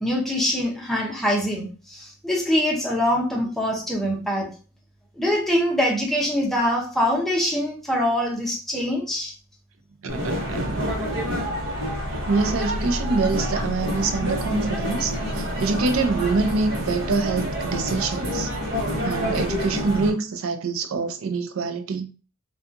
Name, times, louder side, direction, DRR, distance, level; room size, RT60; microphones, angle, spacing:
voice 1, 0.0-4.5 5.2-9.3, equal, ahead, 0.7 m, -24 dB
sound 1, 10.1-20.1, equal, 55° right, 1.0 m, -27 dB
voice 2, 10.2-10.8 12.3-18.5 19.0-22.1, right 4 dB, 75° right, 0.4 m, -25 dB
2.7 x 2.3 x 2.5 m
head